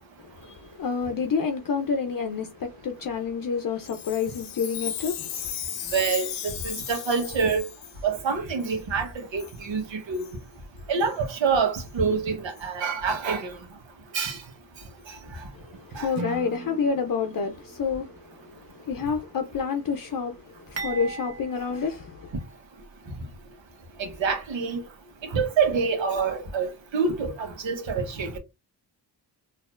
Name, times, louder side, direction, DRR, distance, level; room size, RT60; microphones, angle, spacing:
voice 1, 0.2-5.5 15.5-22.3, left 5 dB, 45° left, 0.7 m, -29 dB
Chime, 3.9-8.0 8.6-8.7 9.4-9.6 10.1-10.3 11.0-11.1 11.7-11.8 12.6-12.7, left 9 dB, 80° left, 0.8 m, -35 dB
voice 2, 5.9-7.7 8.0-10.2 10.9-13.5 14.1-14.4 15.9-16.1 24.0-24.8 25.3-28.4, right 5 dB, 70° right, 1.3 m, -26 dB
Acoustic guitar / Strum, 16.2-19.3, right 3 dB, 50° right, 0.9 m, -41 dB
sound 1, 20.8-22.9 23.3-23.4 24.3-24.5, right 4 dB, 30° right, 1.3 m, -39 dB
4.2 x 2.7 x 2.5 m
cardioid pair, 60°, 46 cm